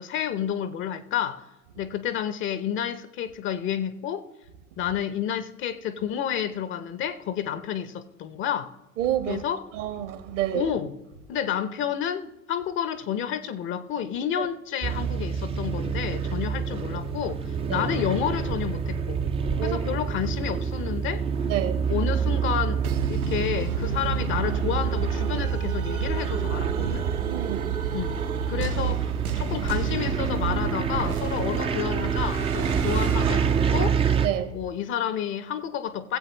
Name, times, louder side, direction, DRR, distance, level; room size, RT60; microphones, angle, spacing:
voice 1, 0.0-1.5 1.8-4.3 4.8-8.7 9.3-9.7 10.0-10.1 10.5-11.0 11.3-19.2 19.6-21.2 21.9-22.8 23.1-27.0 27.9-28.2 28.5-29.1 29.4-34.0 34.5-36.2, left 9 dB, 30° left, 0.7 m, -30 dB
voice 2, 9.0-9.4 9.7-10.7 14.4-14.5 17.7-17.9 19.6-19.8 21.5-21.9 26.8-27.9 34.2-34.6, right 11 dB, 60° right, 1.4 m, -29 dB
sound 1, 14.8-34.3, right 6 dB, 15° right, 0.5 m, -27 dB
sound 2, 22.8-34.2, right 6 dB, 80° right, 0.7 m, -32 dB
18.5 x 7.9 x 3.0 m
figure-of-eight pair, 80°, 42 cm